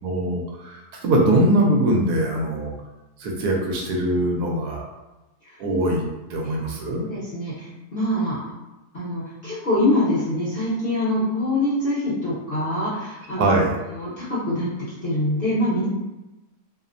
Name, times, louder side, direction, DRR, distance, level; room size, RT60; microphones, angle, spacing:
voice 1, 0.0-2.7 3.2-4.8 5.6-6.0 6.3-7.0 13.4-13.7, right 1 dB, 75° right, -1 dB, 1.1 m, -22 dB
voice 2, 6.4-8.4 8.9-13.5 13.9-14.7 15.0-15.9, left 1 dB, 45° left, -10 dB, 0.8 m, -25 dB
2.7 x 2.0 x 2.4 m, 1.0 s
omnidirectional pair, 1.7 m